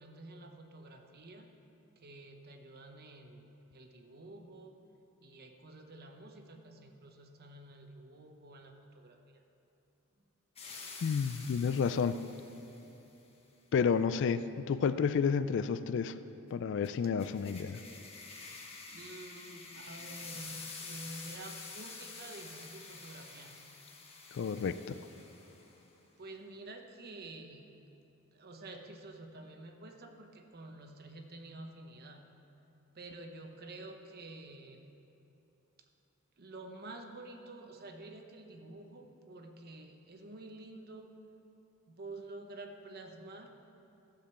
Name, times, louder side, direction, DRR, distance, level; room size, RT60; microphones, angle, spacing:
voice 1, 0.0-1.5 2.0-4.7 5.2-9.4 17.1-18.1 18.7-23.7 26.2-27.7 28.3-32.3 32.9-34.8 36.4-41.1 41.9-43.5, right 2 dB, 45° right, 5 dB, 0.9 m, -49 dB
sound 1, 10.6-12.9 16.8-25.8, left 4 dB, 30° left, 1.1 m, -48 dB
voice 2, 11.0-12.2 13.7-16.2 16.5-17.8 24.3-25.0, left 6 dB, 55° left, 13 dB, 0.3 m, -30 dB
14.5 x 5.1 x 7.0 m, 2.9 s
head